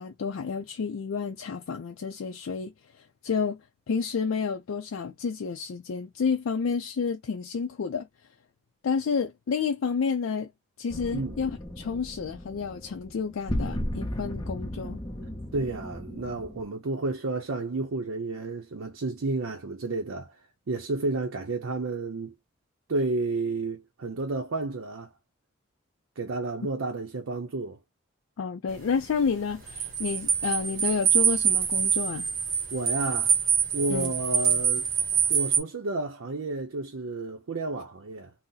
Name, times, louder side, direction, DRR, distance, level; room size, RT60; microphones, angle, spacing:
voice 1, 0.0-2.7 3.2-3.6 3.9-8.1 8.8-10.5 10.8-15.0 28.4-32.3 33.9-34.1, left 5 dB, 85° left, 0.4 m, -30 dB
sound 1, 10.9-16.6, left 1 dB, 20° left, 0.6 m, -35 dB
voice 2, 15.5-20.4 20.7-22.3 22.9-25.1 26.2-27.8 32.7-33.4 33.7-34.9 35.3-38.3, right 3 dB, 85° right, 0.6 m, -31 dB
sound 2, 28.7-35.6, right 7 dB, 45° right, 1.0 m, -25 dB
2.7 x 2.0 x 3.7 m
head